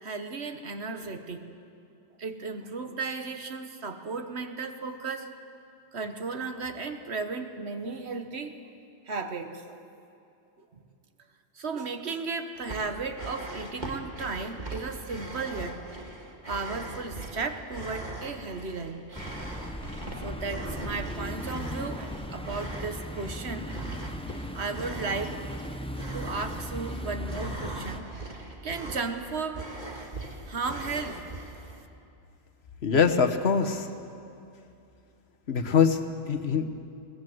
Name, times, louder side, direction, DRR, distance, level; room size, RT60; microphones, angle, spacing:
voice 1, 0.0-1.5 2.2-5.3 5.9-8.5 9.1-9.8 11.5-15.8 16.5-19.0 20.2-23.7 24.5-25.4 26.1-29.7 30.0-30.1 30.5-31.2 31.8-31.9, right 4 dB, 65° right, 7 dB, 1.6 m, -35 dB
sound 1, 12.6-31.8, right 2 dB, 40° right, 2.1 m, -40 dB
sound 2, 19.1-28.0, equal, 5° left, 0.7 m, -38 dB
voice 2, 32.8-33.9 35.5-36.7, left 6 dB, 65° left, 6 dB, 1.4 m, -23 dB
23.0 x 18.0 x 7.9 m, 2.6 s
omnidirectional pair, 1.2 m